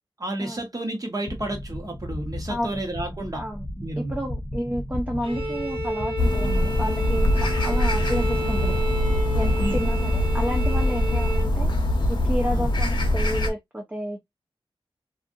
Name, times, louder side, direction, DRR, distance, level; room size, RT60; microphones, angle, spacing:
voice 1, 0.2-3.4 3.8-4.2 9.6-9.8 12.5-12.7, right 1 dB, 40° right, 1.0 m, -31 dB
sound 1, 1.3-9.6, left 1 dB, 15° left, 0.8 m, -35 dB
voice 2, 2.5-2.8 3.3-3.7 4.0-8.8 9.3-11.7 12.1-14.2, equal, 15° right, 0.5 m, -31 dB
Bowed string instrument, 5.2-11.6, right 1 dB, 70° right, 0.8 m, -32 dB
sound 2, 6.2-13.5, left 1 dB, 55° left, 0.7 m, -23 dB
2.6 x 2.4 x 2.4 m
wide cardioid pair, 80°, 9 cm